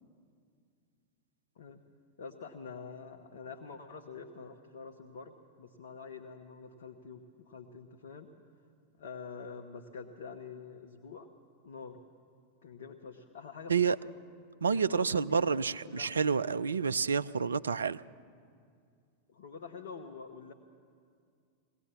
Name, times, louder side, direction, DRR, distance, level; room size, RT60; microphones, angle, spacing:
voice 1, 2.2-8.3 9.0-11.3 11.6-12.0 12.6-14.1 14.6-16.3 19.3-20.5, left 5 dB, 60° left, 1.2 m, -46 dB
voice 2, 14.6-18.0, right 5 dB, 70° right, 0.4 m, -29 dB
21.5 x 18.0 x 7.4 m
figure-of-eight pair, 90°, 0 cm